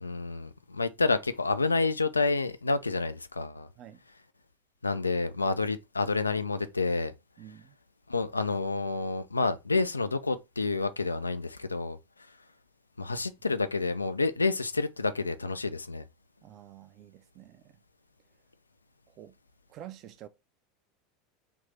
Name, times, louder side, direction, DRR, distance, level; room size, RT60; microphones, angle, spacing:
voice 1, 0.0-3.7 4.8-7.1 8.1-12.0 13.0-16.0, left 3 dB, 85° left, 0.3 m, -29 dB
voice 2, 7.4-7.8 16.4-17.8 19.1-19.4 19.7-20.3, right 11 dB, 45° right, 0.5 m, -48 dB
3.4 x 2.7 x 3.3 m
figure-of-eight pair, 80°, 0 cm